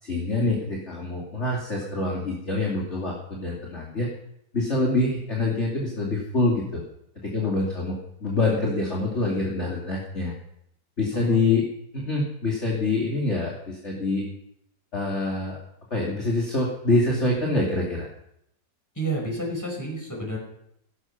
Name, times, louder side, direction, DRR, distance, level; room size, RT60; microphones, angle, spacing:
voice 1, 0.0-4.1 4.5-6.8 7.2-10.3 11.0-11.7 11.9-14.2 14.9-15.6 15.9-18.1, left 2 dB, 40° left, -3 dB, 2.9 m, -25 dB
voice 2, 11.1-11.5 18.9-20.4, right 1 dB, 10° left, 0 dB, 5.3 m, -30 dB
16.5 x 13.0 x 5.9 m, 0.75 s
omnidirectional pair, 1.9 m